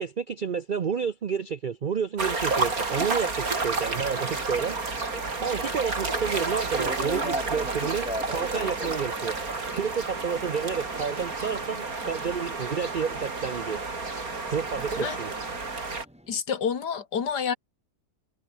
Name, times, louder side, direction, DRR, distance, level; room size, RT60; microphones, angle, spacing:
voice 1, 0.0-4.8 5.4-9.4 9.7-13.8 14.5-15.3, right 6 dB, 75° right, 0.4 m, -30 dB
sound 1, 2.2-16.1, right 3 dB, 55° right, 3.9 m, -31 dB
sound 2, 3.6-16.4, equal, 5° right, 4.5 m, -42 dB
voice 2, 16.3-17.5, left 7 dB, 80° left, 2.5 m, -28 dB
omnidirectional pair, 1.8 m